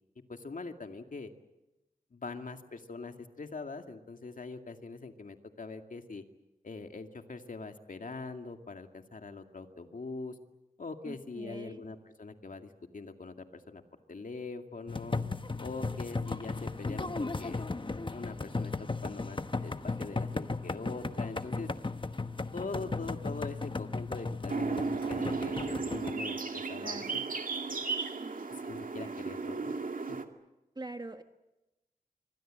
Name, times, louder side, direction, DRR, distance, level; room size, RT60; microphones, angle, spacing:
voice 1, 0.3-1.3 2.1-6.2 6.6-10.4 10.8-13.8 14.1-15.2 15.6-17.6 17.9-18.7 19.0-21.7 22.5-27.2 27.7-27.8 28.5-29.7 30.1-30.2, left 3 dB, 65° left, 6 dB, 2.3 m, -43 dB
voice 2, 11.0-11.8 26.8-27.2 28.2-28.5 29.0-29.1 30.7-31.2, right 2 dB, 30° right, 7 dB, 1.3 m, -44 dB
sound 1, 14.9-26.1, left 3 dB, 35° left, 1.1 m, -36 dB
sound 2, 24.5-30.2, right 4 dB, 65° right, 2.2 m, -35 dB
27.0 x 24.0 x 7.7 m, 0.98 s
wide cardioid pair, 90°, 15 cm